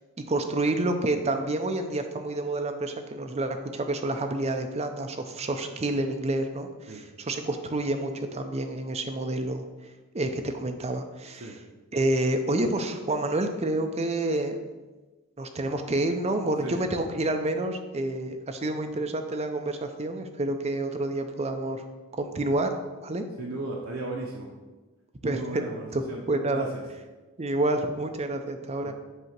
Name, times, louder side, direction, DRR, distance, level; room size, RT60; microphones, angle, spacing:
voice 1, 0.3-9.6 10.1-11.6 11.9-14.6 15.4-21.8 22.2-22.7 23.0-23.2 25.2-25.6 25.9-26.7 27.4-28.9, right 2 dB, 30° right, 6 dB, 0.5 m, -28 dB
voice 2, 23.4-24.5 25.2-26.2 26.5-26.8 28.8-28.9, right 2 dB, 65° right, -2 dB, 0.8 m, -36 dB
8.0 x 2.9 x 5.9 m, 1.2 s
head